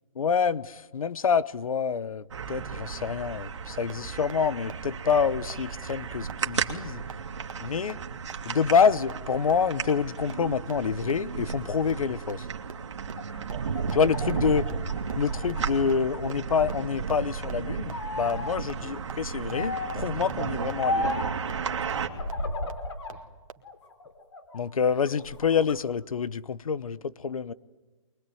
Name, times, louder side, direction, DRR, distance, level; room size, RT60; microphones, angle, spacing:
voice 1, 0.1-7.0 7.6-8.0 8.4-12.5 13.9-14.7 15.2-21.1 24.5-27.5, left 6 dB, 85° left, 0.9 m, -27 dB
sound 1, 2.3-22.1, right 6 dB, 60° right, 2.4 m, -34 dB
sound 2, 3.9-4.0 4.3-4.4 4.7-4.8 5.1-5.2 5.5-5.6 5.9-6.0 6.3-6.4 6.7-6.8 7.1-7.2 7.5-7.6 7.9-8.0 8.3-8.4 8.7-8.8 9.1-9.2 9.5-9.6 9.9-10.0 10.3-10.4 10.7-10.8 11.1-11.2 11.5-11.6 11.9-12.0 12.3-12.4 12.7-12.8 13.1-13.2 13.5-13.6 13.9-14.0 14.3-14.4 14.7-14.8 15.1-15.2 15.5-15.6 15.9-16.0 16.3-16.4 16.7-16.8 17.1-17.2 17.5-17.6 17.9-18.0 18.3-18.4 18.7-18.8 19.1-19.2 19.5-19.6 19.9-20.0 20.3-20.4 20.7-20.8 21.1-21.2 21.5-21.6 21.9-22.0 22.3-22.4 22.7-22.8 23.1-23.2 23.5-23.6, right 6 dB, 75° right, 1.8 m, -40 dB
voice 2, 7.8-8.2 13.5-14.1 14.4-14.7 18.8-19.2 21.9-22.8 23.1-23.3, right 7 dB, 10° right, 0.9 m, -48 dB
sound 3, 13.0-16.2 16.6-17.5 17.9-18.5 19.5-20.1 20.8-21.4 22.1-23.2 23.6-24.6 25.1-25.8, left 2 dB, 55° left, 4.0 m, -34 dB
23.0 x 23.0 x 9.3 m
hypercardioid pair, 175°, 17 cm